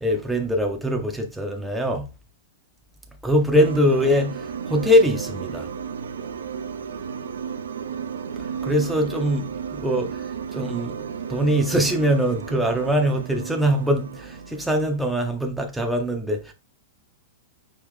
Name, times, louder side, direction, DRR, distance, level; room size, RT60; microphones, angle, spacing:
voice 1, 0.0-2.0 3.2-5.7 8.6-11.0 11.3-16.5, equal, 5° right, 0.6 m, -22 dB
sound 1, 3.5-15.0, right 7 dB, 90° right, 0.6 m, -33 dB
4.8 x 2.8 x 3.6 m
hypercardioid pair, 135°, 0 cm